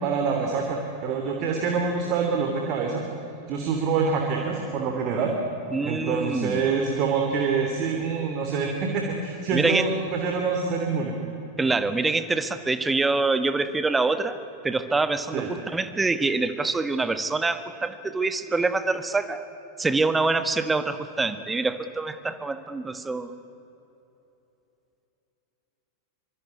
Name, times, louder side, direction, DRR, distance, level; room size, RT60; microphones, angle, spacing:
voice 1, 0.0-3.0 3.5-5.3 5.8-11.1 15.3-15.5, right 5 dB, 40° right, 2 dB, 3.1 m, -26 dB
voice 2, 5.7-6.7 9.5-9.9 11.6-14.4 14.6-19.4 19.8-23.3, right 3 dB, 10° right, 11 dB, 1.5 m, -25 dB
24.5 x 24.5 x 9.7 m, 3.0 s
figure-of-eight pair, 90°, 0 cm